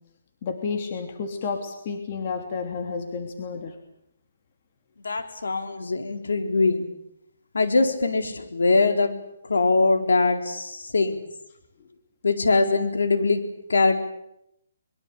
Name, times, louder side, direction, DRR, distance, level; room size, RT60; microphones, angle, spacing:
voice 1, 0.4-3.7, left 5 dB, 40° left, 5 dB, 3.0 m, -31 dB
voice 2, 5.0-6.9 7.5-9.1 9.5-11.2 12.2-13.4 13.7-14.0, left 3 dB, 90° left, 7 dB, 4.3 m, -22 dB
23.5 x 22.5 x 8.5 m, 0.79 s
hypercardioid pair, 160°, 0 cm